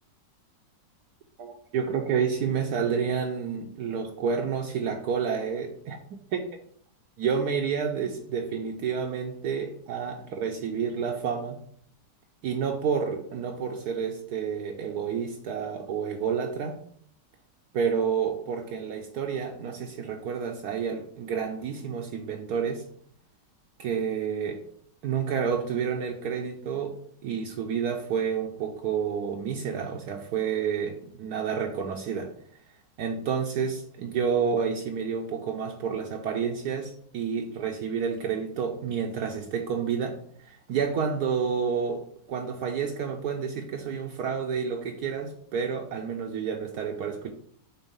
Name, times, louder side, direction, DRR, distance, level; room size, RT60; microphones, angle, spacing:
voice 1, 1.4-6.0 7.2-11.6 12.4-16.8 17.7-22.8 23.8-24.6 25.0-32.3 33.0-42.0 42.3-47.3, right 6 dB, 70° right, 3 dB, 1.1 m, -29 dB
4.4 x 4.0 x 5.4 m, 0.62 s
omnidirectional pair, 1.9 m